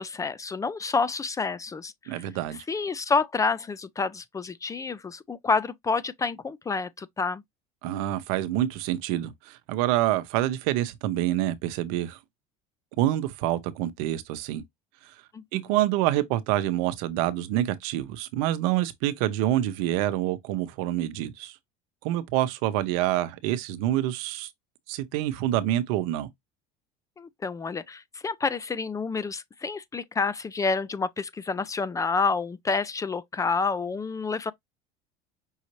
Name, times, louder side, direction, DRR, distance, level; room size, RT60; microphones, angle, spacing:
voice 1, 0.0-2.2 2.7-7.4 15.3-15.6 27.2-34.5, left 4 dB, 20° left, 0.4 m, -29 dB
voice 2, 2.1-2.6 7.8-12.2 13.0-14.6 15.5-21.5 22.0-24.5 24.9-26.3, right 13 dB, 80° right, 0.8 m, -27 dB
5.5 x 2.7 x 3.0 m
supercardioid pair, 110°, 18 cm